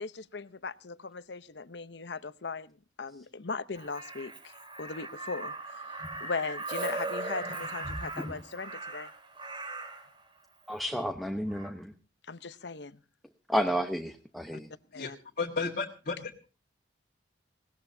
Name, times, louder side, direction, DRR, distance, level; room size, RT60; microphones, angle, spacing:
voice 1, 0.0-9.1 12.3-13.0 14.5-14.6 14.9-15.1, left 4 dB, 65° left, 14 dB, 0.9 m, -39 dB
Crow, 3.8-10.1 11.5-11.7, right 2 dB, 25° right, 3.8 m, -38 dB
voice 2, 10.7-11.9 13.5-14.7, equal, ahead, 5 dB, 1.0 m, -31 dB
voice 3, 15.4-16.5, left 4 dB, 50° left, 0 dB, 1.8 m, -33 dB
20.5 x 18.5 x 2.7 m, 0.35 s
head